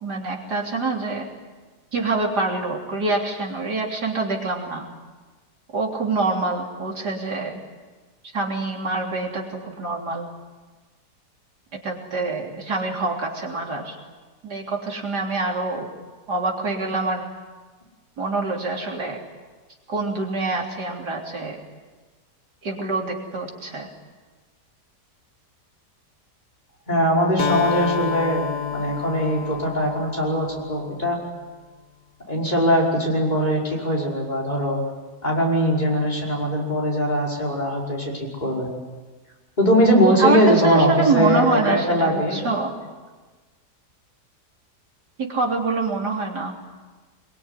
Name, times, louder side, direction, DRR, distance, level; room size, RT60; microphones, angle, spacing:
voice 1, 0.0-1.3 1.9-4.9 5.7-7.6 8.3-10.3 11.8-14.0 14.4-15.9 16.3-17.3 18.2-19.2 19.9-21.6 22.6-23.9 40.2-42.7 45.2-46.5, right 3 dB, 70° right, 0 dB, 4.1 m, -25 dB
voice 2, 26.9-31.2 32.3-34.8 35.2-38.7 39.6-42.4, equal, 25° left, -3 dB, 5.7 m, -21 dB
Acoustic guitar, 27.4-31.3, left 7 dB, 75° left, 1.8 m, -29 dB
24.5 x 23.0 x 10.0 m, 1.3 s
omnidirectional pair, 1.8 m